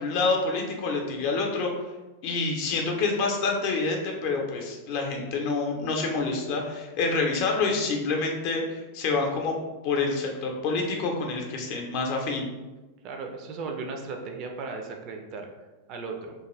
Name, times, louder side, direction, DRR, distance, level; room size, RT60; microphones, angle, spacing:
voice 1, 0.0-1.7 2.2-9.5 9.8-12.5, left 3 dB, 45° left, 1 dB, 0.5 m, -27 dB
voice 2, 13.0-16.3, right 4 dB, 40° right, 3 dB, 0.4 m, -36 dB
2.3 x 2.3 x 3.0 m, 1.1 s
figure-of-eight pair, 90°, 0 cm